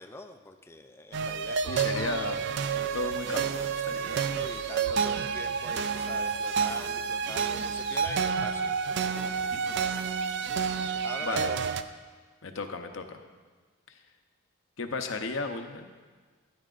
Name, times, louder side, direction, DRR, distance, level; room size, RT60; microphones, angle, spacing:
voice 1, 0.0-2.3 3.9-8.8 9.2-9.3 10.8-11.6, left 2 dB, 10° left, 6 dB, 0.4 m, -44 dB
sound 1, 1.1-11.8, right 6 dB, 55° right, 0.3 m, -29 dB
voice 2, 1.6-2.4 2.9-4.0 9.5-9.8 10.8-11.5 12.4-13.2 13.9-14.0 14.8-15.9, left 3 dB, 65° left, 6 dB, 0.7 m, -35 dB
12.5 x 10.0 x 2.5 m, 1.4 s
head